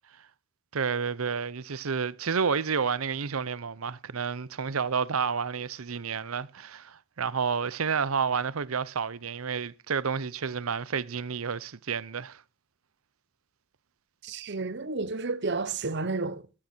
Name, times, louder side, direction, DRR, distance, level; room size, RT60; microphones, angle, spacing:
voice 1, 0.7-12.4, right 6 dB, 90° right, 0.8 m, -30 dB
voice 2, 14.2-16.4, right 3 dB, 55° right, 0.9 m, -31 dB
15.0 x 13.5 x 4.5 m
head